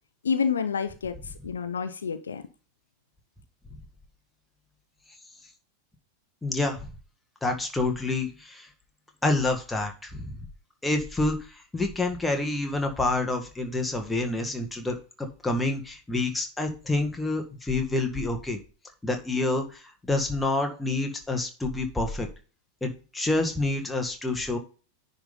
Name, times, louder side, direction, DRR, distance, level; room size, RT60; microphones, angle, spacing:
voice 1, 0.2-2.4, left 6 dB, 70° left, 0.8 m, -29 dB
voice 2, 6.4-6.8 7.4-8.7 9.2-10.4 10.8-18.6 19.0-22.3 22.8-24.6, left 2 dB, 5° left, 1.8 m, -28 dB
10.0 x 4.1 x 5.4 m
figure-of-eight pair, 90°, 0 cm